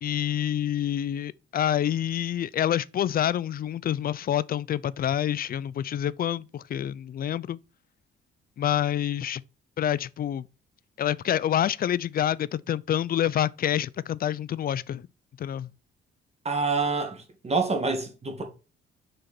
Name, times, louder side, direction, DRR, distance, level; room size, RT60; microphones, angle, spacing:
voice 1, 0.0-7.6 8.6-9.4 9.8-10.4 11.0-15.0 15.4-15.7, left 10 dB, 50° left, 0.5 m, -27 dB
voice 2, 16.4-18.4, right 4 dB, 30° right, 2.2 m, -27 dB
6.6 x 4.7 x 4.4 m
cardioid pair, 90°, 20 cm